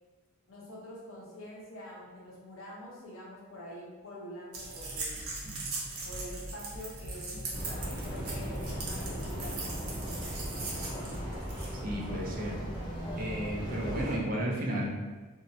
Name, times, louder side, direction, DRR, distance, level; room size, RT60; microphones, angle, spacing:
voice 1, 0.5-5.2 6.0-10.2, equal, 65° left, -6 dB, 0.8 m, -46 dB
sound 1, 4.5-11.8, right 2 dB, 80° right, 0.7 m, -40 dB
sound 2, 7.5-14.2, equal, 25° left, 0.6 m, -37 dB
voice 2, 11.8-12.6 13.2-14.9, equal, 40° right, -2 dB, 0.4 m, -33 dB
2.6 x 2.0 x 2.6 m, 1.3 s
head